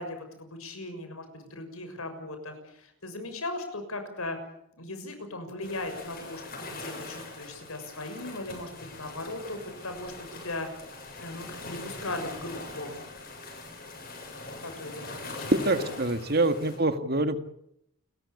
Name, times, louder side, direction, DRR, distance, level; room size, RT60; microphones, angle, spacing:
voice 1, 0.0-4.4 4.8-6.4 6.7-8.7 9.0-10.7 11.2-13.0 14.6-15.5, left 2 dB, 85° left, 7 dB, 6.6 m, -38 dB
sound 1, 5.6-16.8, left 2 dB, 45° left, 7.7 m, -42 dB
voice 2, 15.5-17.4, right 2 dB, 45° right, 9 dB, 2.0 m, -25 dB
29.5 x 15.0 x 8.6 m, 0.76 s
head